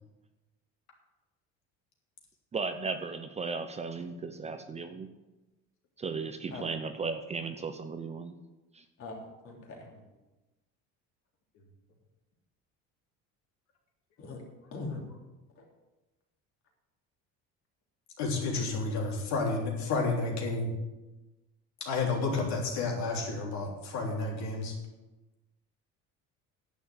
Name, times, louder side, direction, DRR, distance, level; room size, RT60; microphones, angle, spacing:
voice 1, 2.5-5.1 6.0-8.3 8.7-8.8, right 4 dB, 20° right, 8 dB, 0.7 m, -36 dB
voice 2, 9.4-9.9 14.2-14.4 14.7-15.0 15.6-15.7, left 3 dB, 45° left, 0 dB, 3.0 m, -40 dB
voice 3, 18.2-20.7 21.8-24.7, left 3 dB, 60° left, 0 dB, 3.3 m, -31 dB
10.5 x 7.2 x 8.0 m, 1.1 s
cardioid pair, 140°, 30 cm